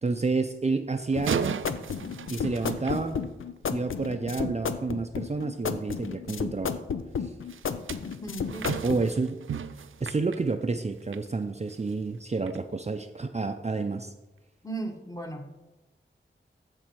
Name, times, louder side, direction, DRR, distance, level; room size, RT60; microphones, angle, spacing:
voice 1, 0.0-1.6 2.3-3.2 3.7-6.8 7.2-7.3 8.8-9.4 10.0-14.1, right 3 dB, 35° right, 7 dB, 0.5 m, -29 dB
sound 1, 1.1-3.7 7.5-11.3 11.7-11.9 12.5-12.6, right 7 dB, 85° right, 0.4 m, -36 dB
sound 2, 1.2-9.0, left 6 dB, 85° left, 0.5 m, -32 dB
voice 2, 8.2-9.0 14.6-15.5, right 2 dB, 15° left, 3 dB, 1.4 m, -37 dB
14.0 x 5.3 x 4.6 m, 1.1 s
wide cardioid pair, 60°, 20 cm